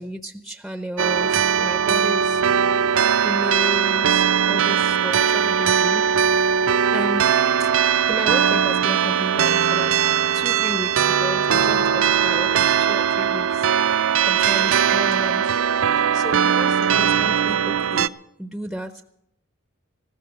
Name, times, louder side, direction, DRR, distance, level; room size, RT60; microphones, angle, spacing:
voice 1, 0.0-2.4 3.2-6.4 6.9-7.3 7.6-7.7 8.1-10.0 10.3-13.7 14.2-18.1 18.4-19.1, equal, ahead, 9 dB, 0.5 m, -33 dB
sound 1, 1.0-18.1, right 8 dB, 75° right, 0.5 m, -20 dB
15.0 x 14.0 x 5.8 m, 0.78 s
head